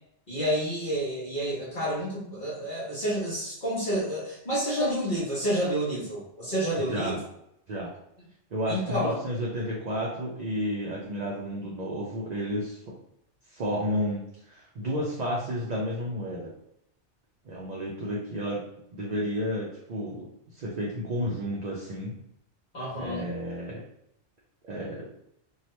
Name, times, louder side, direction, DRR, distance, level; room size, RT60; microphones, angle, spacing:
voice 1, 0.3-7.2 8.7-9.2 22.7-23.3, equal, 50° left, -7 dB, 1.0 m, -29 dB
voice 2, 6.8-7.2 7.7-7.9 8.5-12.8 13.5-16.5 17.4-18.6 18.9-20.3 20.5-22.1 23.0-23.8 24.6-25.1, equal, 50° right, -4 dB, 0.6 m, -31 dB
2.9 x 2.3 x 3.1 m, 0.76 s
omnidirectional pair, 1.2 m